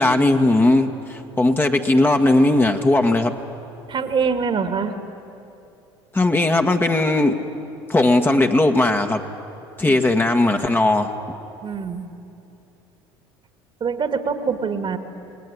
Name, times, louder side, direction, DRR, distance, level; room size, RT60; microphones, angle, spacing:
voice 1, 0.0-3.4 6.1-7.4 7.9-9.2 9.8-11.1, left 2 dB, 15° left, 4 dB, 1.7 m, -18 dB
voice 2, 3.9-4.9 9.9-10.0 11.6-12.1 13.8-15.0, right 5 dB, 40° right, 8 dB, 2.2 m, -24 dB
28.5 x 19.5 x 9.9 m, 2.8 s
hypercardioid pair, 70°, 13 cm